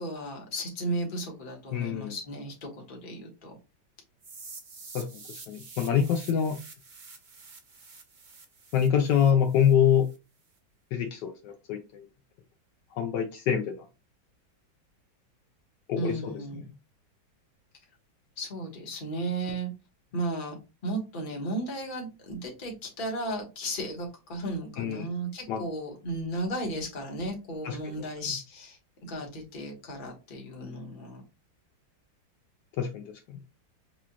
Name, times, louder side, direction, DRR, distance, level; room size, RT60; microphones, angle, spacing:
voice 1, 0.0-3.5 16.0-16.7 18.4-19.7 20.1-31.2, right 1 dB, 30° left, 1 dB, 1.2 m, -35 dB
voice 2, 1.7-2.2 4.9-6.6 8.7-10.1 10.9-12.1 12.9-13.9 15.9-16.4 24.8-25.1 25.5-25.6 27.6-27.8 32.8-33.4, left 8 dB, 75° left, 6 dB, 1.2 m, -26 dB
sound 1, 4.2-10.2, right 4 dB, 60° right, 0.5 m, -48 dB
6.1 x 2.4 x 2.8 m, 0.28 s
omnidirectional pair, 2.1 m